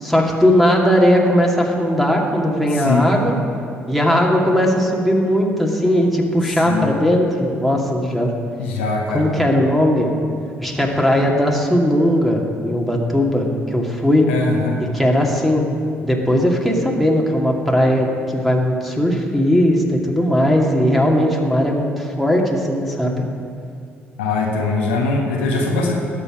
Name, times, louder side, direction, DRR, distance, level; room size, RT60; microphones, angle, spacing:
voice 1, 0.0-3.4 3.9-8.3 9.1-10.1 10.6-14.3 14.9-15.6 16.0-23.1, equal, ahead, -1 dB, 2.4 m, -18 dB
voice 2, 8.6-9.3 14.3-14.8 24.2-25.9, left 3 dB, 80° left, -1 dB, 1.3 m, -21 dB
19.5 x 7.1 x 5.1 m, 2.3 s
figure-of-eight pair, 50°, 6 cm